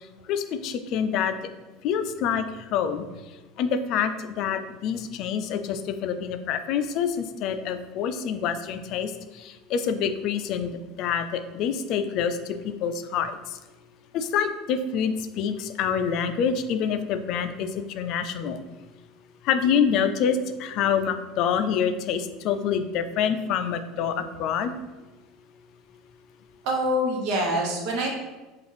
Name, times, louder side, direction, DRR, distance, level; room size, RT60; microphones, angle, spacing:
voice 1, 0.3-1.3 1.8-3.1 3.6-13.6 14.1-18.6 19.4-24.7, left 7 dB, 55° left, 9 dB, 0.3 m, -26 dB
voice 2, 26.6-28.1, equal, 65° right, -1 dB, 0.9 m, -25 dB
5.1 x 2.4 x 3.3 m, 1.2 s
supercardioid pair, 130°, 0 cm